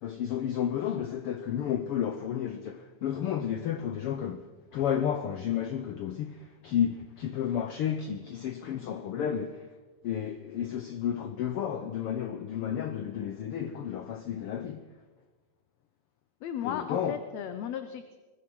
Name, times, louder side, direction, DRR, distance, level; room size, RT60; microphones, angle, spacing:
voice 1, 0.0-9.7 10.0-14.8 16.6-17.2, left 9 dB, 85° left, 1.2 m, -32 dB
voice 2, 16.4-18.2, left 9 dB, 70° left, 1.9 m, -35 dB
21.0 x 20.0 x 6.2 m
omnidirectional pair, 3.6 m